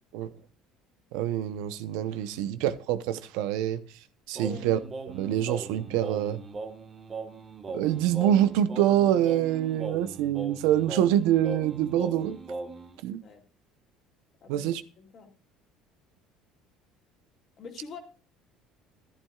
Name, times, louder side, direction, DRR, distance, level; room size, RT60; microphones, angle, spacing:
voice 1, 1.1-3.8 4.3-4.8 5.1-6.4 7.7-12.4 13.0-13.2 14.5-14.8, right 11 dB, 80° right, 0.8 m, -25 dB
Singing, 4.3-13.0, right 3 dB, 20° right, 1.2 m, -39 dB
voice 2, 15.0-15.3 17.6-18.0, left 6 dB, 35° left, 2.4 m, -44 dB
14.0 x 12.0 x 2.4 m
cardioid pair, 160°, 0 cm